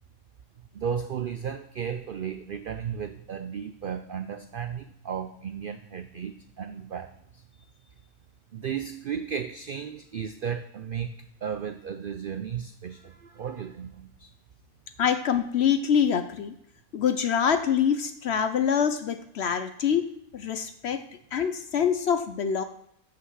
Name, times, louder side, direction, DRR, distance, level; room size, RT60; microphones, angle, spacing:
voice 1, 0.7-7.4 8.5-14.3, right 7 dB, 90° right, 8 dB, 0.4 m, -34 dB
voice 2, 15.0-16.5 16.9-21.0 21.3-22.6, left 7 dB, 60° left, 9 dB, 0.7 m, -25 dB
7.6 x 5.9 x 6.4 m, 0.76 s
omnidirectional pair, 1.6 m